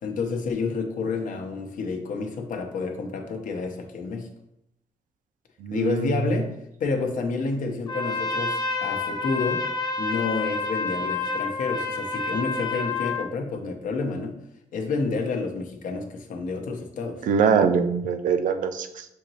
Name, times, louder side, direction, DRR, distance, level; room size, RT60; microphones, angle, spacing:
voice 1, 0.0-4.3 5.7-6.5 6.8-9.6 10.0-14.4 14.7-17.2, left 4 dB, 75° left, 4 dB, 0.7 m, -29 dB
voice 2, 5.6-6.2 17.3-19.1, right 6 dB, 75° right, 8 dB, 0.5 m, -23 dB
Trumpet, 7.9-13.3, left 3 dB, 30° left, 0.7 m, -29 dB
6.4 x 2.9 x 2.8 m, 0.80 s
cardioid pair, 115°, 14 cm